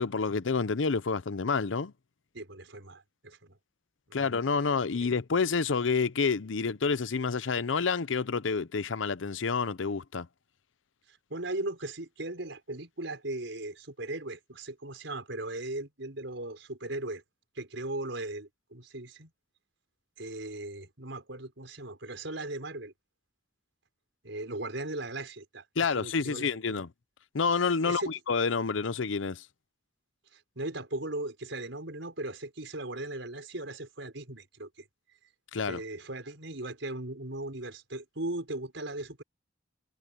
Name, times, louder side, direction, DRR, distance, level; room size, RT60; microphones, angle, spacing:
voice 1, 0.0-1.9 4.1-10.3 25.8-26.9 27.3-29.5 35.5-35.8, left 5 dB, 90° left, 0.7 m, -28 dB
voice 2, 2.3-3.6 4.1-4.3 4.9-5.1 11.1-17.2 17.6-19.3 20.2-22.9 24.2-26.5 27.9-28.1 30.3-34.8 35.7-39.2, right 2 dB, 80° right, 4.8 m, -38 dB
head